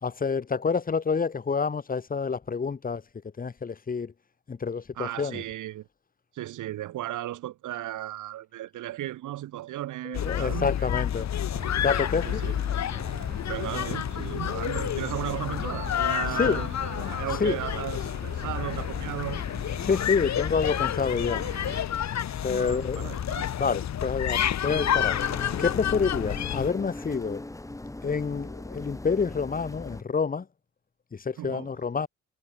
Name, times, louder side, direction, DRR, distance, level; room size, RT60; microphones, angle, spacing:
voice 1, 0.0-3.0 3.4-4.1 4.5-5.4 10.0-11.3 11.8-12.4 16.4-16.6 17.4-17.6 19.8-21.4 22.4-23.1 23.6-25.2 25.6-27.4 28.0-30.4 31.1-32.1, left 5 dB, 30° left, 1.4 m, -28 dB
voice 2, 4.9-5.9 6.3-11.5 12.2-12.5 13.5-19.4 22.5-23.5 31.4-31.8, right 14 dB, 80° right, 2.8 m, -35 dB
sound 1, 10.1-26.7, left 10 dB, 65° left, 3.8 m, -29 dB
sound 2, 11.5-21.8, right 5 dB, 35° right, 4.5 m, -44 dB
sound 3, 24.7-30.0, left 2 dB, 10° left, 3.1 m, -39 dB
cardioid pair, 90°, 30 cm